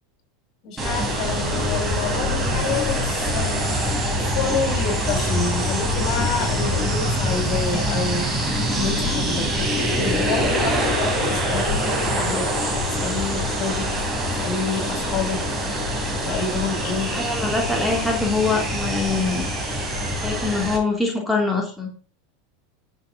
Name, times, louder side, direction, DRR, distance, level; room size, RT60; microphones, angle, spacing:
voice 1, 0.6-3.6 4.3-12.5 12.9-13.9 14.4-15.4 16.3-17.2, left 4 dB, 50° left, 2 dB, 6.5 m, -28 dB
sound 1, 0.8-20.8, equal, 15° right, 4.6 m, -24 dB
voice 2, 17.1-19.5 20.2-21.9, left 3 dB, ahead, -1 dB, 2.9 m, -23 dB
11.5 x 7.6 x 3.8 m, 0.40 s
hypercardioid pair, 105°, 0 cm